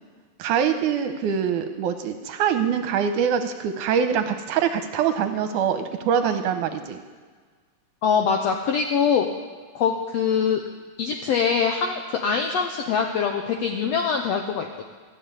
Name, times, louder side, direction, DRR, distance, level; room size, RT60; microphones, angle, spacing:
voice 1, 0.4-7.0, right 7 dB, 75° right, 8 dB, 2.0 m, -24 dB
voice 2, 8.0-9.3 9.7-10.6 11.0-14.8, left 6 dB, 80° left, 3 dB, 1.5 m, -23 dB
15.0 x 7.1 x 9.7 m, 1.5 s
omnidirectional pair, 3.9 m